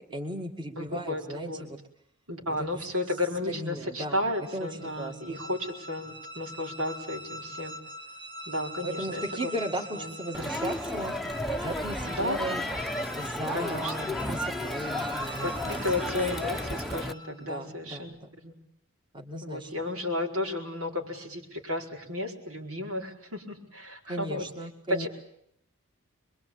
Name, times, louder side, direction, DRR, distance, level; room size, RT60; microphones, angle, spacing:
voice 1, 0.1-1.8 2.5-2.7 3.5-5.4 8.8-11.1 11.6-12.6 13.2-16.1 17.5-18.3 19.1-19.7 24.1-25.1, right 1 dB, 20° right, 3 dB, 2.2 m, -36 dB
voice 2, 0.8-1.7 2.3-7.8 8.5-9.2 9.9-10.2 12.1-12.4 13.5-14.1 15.4-18.1 18.4-18.5 19.4-24.5 24.9-25.1, left 1 dB, 80° right, 1 dB, 4.7 m, -33 dB
sound 1, 4.1-17.5, equal, 55° right, 1.9 m, -43 dB
Crowd, 10.3-17.1, left 1 dB, ahead, 1.0 m, -33 dB
25.5 x 22.5 x 8.8 m, 0.73 s
head